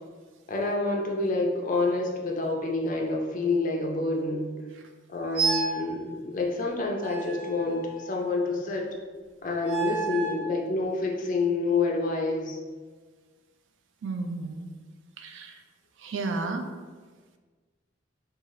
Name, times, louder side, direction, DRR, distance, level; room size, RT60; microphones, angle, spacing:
voice 1, 0.5-4.5 5.1-8.8 9.4-12.6, left 3 dB, 45° left, 0 dB, 0.4 m, -28 dB
sound 1, 5.4-5.9 7.0-8.3 9.6-10.5, right 4 dB, 10° right, 0.5 m, -31 dB
voice 2, 14.0-14.7 15.2-15.6 16.0-16.7, right 3 dB, 70° right, 5 dB, 0.3 m, -32 dB
2.7 x 2.3 x 3.0 m, 1.4 s
head